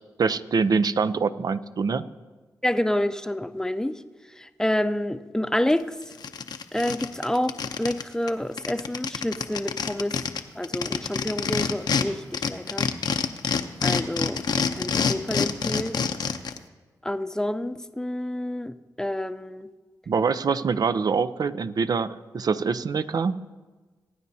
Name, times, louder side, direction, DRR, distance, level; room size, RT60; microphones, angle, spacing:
voice 1, 0.2-2.0 20.1-23.5, right 5 dB, 60° right, 13 dB, 0.5 m, -25 dB
voice 2, 2.6-4.0 4.4-6.1 6.7-10.3 10.5-12.9 13.8-16.0 17.0-19.7, left 1 dB, 10° left, 10 dB, 0.6 m, -28 dB
sound 1, 5.7-5.8 6.1-8.0 8.3-8.4 8.6-12.1 12.3-16.6, left 6 dB, 70° left, 0.7 m, -26 dB
22.5 x 9.4 x 2.8 m, 1.3 s
supercardioid pair, 45°, 8 cm